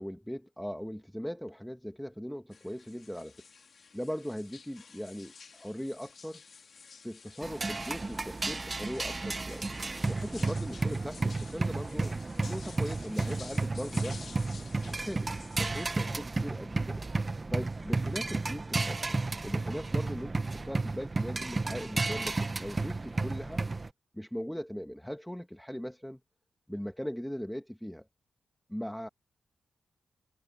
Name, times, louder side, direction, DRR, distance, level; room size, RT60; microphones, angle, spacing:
voice 1, 0.0-3.4 3.9-6.4 7.0-9.6 10.1-12.1 12.4-14.2 14.9-15.3 15.5-17.0 17.5-23.6 24.1-26.2 26.7-28.1 28.7-29.1, equal, 5° left, 2.0 m, -39 dB
sound 1, 2.5-15.9, left 5 dB, 60° left, 2.7 m, -52 dB
sound 2, 7.4-23.9, right 3 dB, 35° right, 1.3 m, -32 dB
cardioid pair, 60°, 0 cm